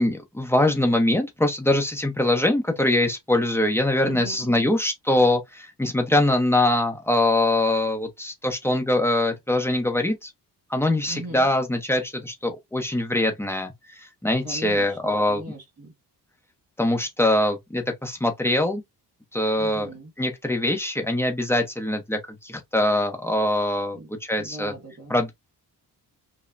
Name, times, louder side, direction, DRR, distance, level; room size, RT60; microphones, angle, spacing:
voice 1, 0.0-10.3 10.7-15.4 16.8-18.8 19.3-19.9 20.2-24.7 25.1-25.3, left 1 dB, 5° left, 0.7 m, -23 dB
voice 2, 4.0-4.7 11.1-11.5 14.4-15.9 19.6-20.1 24.0-24.1 24.4-25.1, right 1 dB, 35° right, 1.7 m, -39 dB
5.4 x 2.2 x 2.5 m
wide cardioid pair, 175°, 41 cm